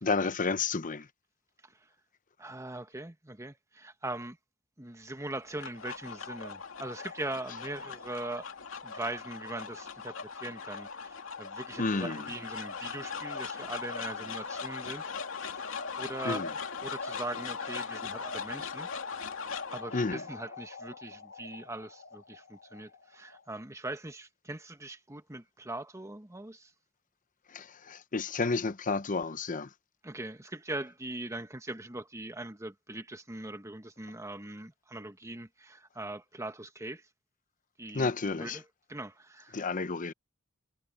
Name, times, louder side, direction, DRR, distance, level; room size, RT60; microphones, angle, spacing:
voice 1, 0.0-1.1 11.8-12.3 16.2-16.5 19.9-20.2 27.5-29.7 37.9-38.6 39.5-40.1, left 4 dB, 40° left, 0.8 m, -31 dB
voice 2, 2.4-4.4 4.8-8.5 8.8-15.6 16.0-16.5 16.8-18.9 19.7-26.7 30.0-37.0 37.8-38.6 38.9-39.6, right 2 dB, 15° right, 1.4 m, -41 dB
sound 1, 5.3-23.6, left 5 dB, 70° left, 2.8 m, -40 dB
head